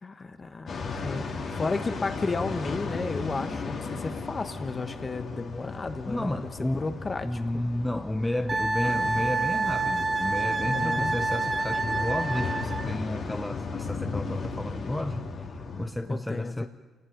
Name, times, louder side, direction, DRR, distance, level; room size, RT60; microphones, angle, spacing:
voice 1, 0.0-7.6 10.7-11.2 16.1-16.7, left 3 dB, 30° left, 1.4 m, -33 dB
sound 1, 0.7-15.9, left 4 dB, 55° left, 3.3 m, -35 dB
voice 2, 6.1-16.7, left 1 dB, 10° left, 0.7 m, -32 dB
Wind instrument woodwind instrument, 8.5-12.9, right 3 dB, 30° right, 1.4 m, -28 dB
28.5 x 18.0 x 5.3 m
cardioid pair, 90°, 0 cm